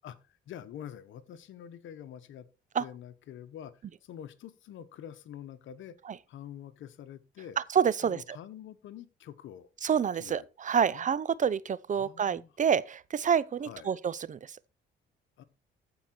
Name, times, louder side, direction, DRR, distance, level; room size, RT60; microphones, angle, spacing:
voice 1, 0.0-2.5 2.8-6.0 6.3-7.6 8.0-9.7 10.2-10.4 10.9-11.1 11.9-12.5 13.6-14.0 15.4-15.5, left 10 dB, 75° left, 1.0 m, -46 dB
voice 2, 7.7-8.2 9.8-14.6, right 7 dB, 40° right, 0.6 m, -28 dB
14.5 x 4.9 x 4.5 m
cardioid pair, 90°, 20 cm